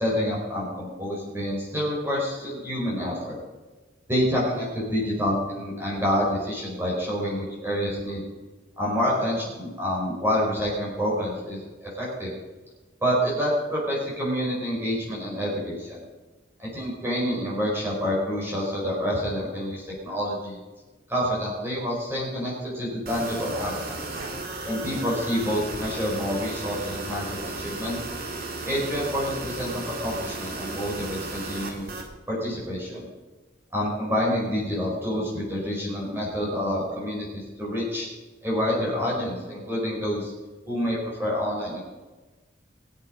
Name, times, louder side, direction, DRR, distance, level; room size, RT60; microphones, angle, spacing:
voice 1, 0.0-3.4 4.1-8.2 8.8-12.4 13.0-16.0 16.6-20.6 21.1-24.0 24.6-28.0 28.7-31.9 32.3-33.1 33.7-38.1 38.4-40.3 40.7-41.8, equal, 15° right, -5 dB, 4.9 m, -28 dB
sound 1, 23.1-32.1, right 2 dB, 60° right, 2.3 m, -34 dB
20.0 x 8.4 x 5.2 m, 1.2 s
head